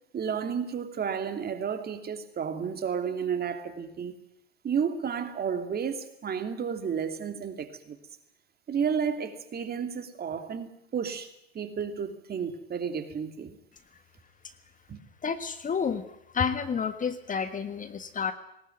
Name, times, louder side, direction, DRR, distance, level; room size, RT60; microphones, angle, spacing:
voice 1, 0.1-4.1 4.6-8.0 8.7-13.6 14.9-15.0, right 7 dB, 30° right, 8 dB, 2.7 m, -32 dB
voice 2, 15.2-16.0 16.3-18.3, left 6 dB, 25° left, 10 dB, 1.6 m, -30 dB
19.5 x 19.0 x 9.3 m, 0.77 s
figure-of-eight pair, 80°, 32 cm